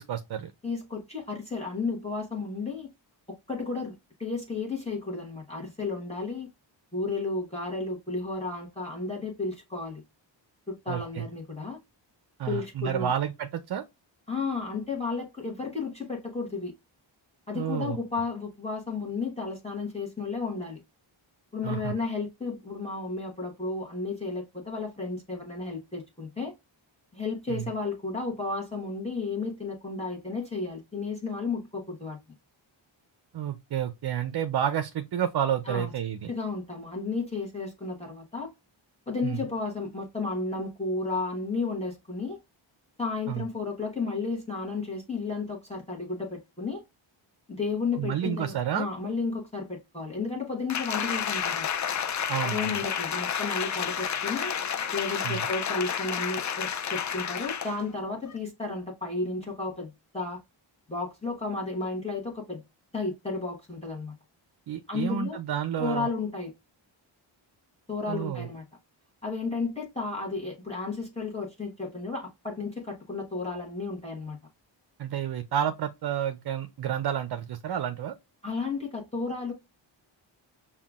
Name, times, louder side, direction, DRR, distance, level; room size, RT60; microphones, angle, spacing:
voice 1, 0.0-0.5 10.9-11.3 12.4-13.8 17.5-18.0 21.6-21.9 27.5-27.7 33.3-36.3 39.2-39.4 43.3-43.4 47.9-48.9 52.3-52.8 55.2-55.5 64.7-66.1 68.1-68.5 75.0-78.1, right 9 dB, 55° right, 0.5 m, -30 dB
voice 2, 0.6-2.9 3.3-3.9 4.2-6.5 6.9-10.0 10.7-11.8 12.5-13.1 14.3-16.7 17.5-20.8 21.5-26.5 27.1-32.2 35.6-35.9 36.3-38.5 39.1-42.4 43.0-46.8 47.5-51.7 52.4-54.5 54.9-60.4 60.9-62.6 62.9-64.1 64.9-65.4 65.8-66.5 67.9-68.6 69.2-74.4 78.4-79.5, left 3 dB, 15° left, 1.1 m, -33 dB
Applause, 50.7-57.8 58.3-58.4, left 8 dB, 40° left, 0.4 m, -30 dB
5.5 x 2.3 x 2.3 m
wide cardioid pair, 105°, 47 cm